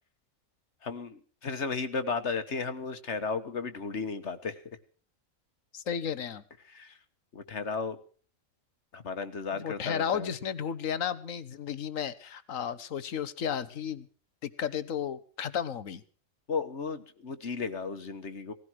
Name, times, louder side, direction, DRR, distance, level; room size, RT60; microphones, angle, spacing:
voice 1, 0.8-4.6 6.7-7.0 7.3-8.0 8.9-10.3 16.5-18.5, left 4 dB, 60° left, 10 dB, 1.7 m, -34 dB
voice 2, 5.7-6.4 9.5-14.1 14.4-16.0, left 8 dB, 75° left, 15 dB, 1.5 m, -33 dB
19.0 x 15.5 x 4.7 m, 0.42 s
omnidirectional pair, 1.4 m